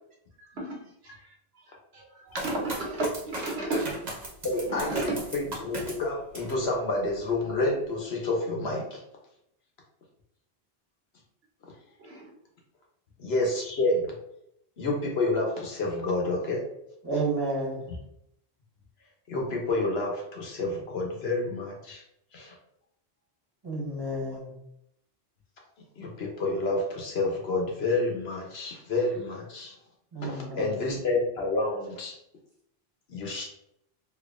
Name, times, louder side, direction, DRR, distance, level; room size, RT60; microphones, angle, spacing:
voice 1, 0.4-1.3 1.7-3.9 4.7-5.2 12.0-12.3, right 2 dB, 85° right, -2 dB, 1.3 m, -33 dB
sound 1, 2.3-6.6 7.1-7.7, right 1 dB, 45° right, 1.0 m, -37 dB
voice 2, 4.4-4.9 5.3-9.0 13.2-14.1 14.8-16.6 19.3-22.0 22.3-22.5 26.0-29.7 30.3-32.1 33.1-33.5, left 2 dB, 85° left, 0 dB, 1.2 m, -29 dB
voice 3, 17.0-17.9 23.6-24.5 30.1-30.8, right 2 dB, 25° right, -5 dB, 1.1 m, -31 dB
4.4 x 2.6 x 2.4 m, 0.78 s
omnidirectional pair, 1.0 m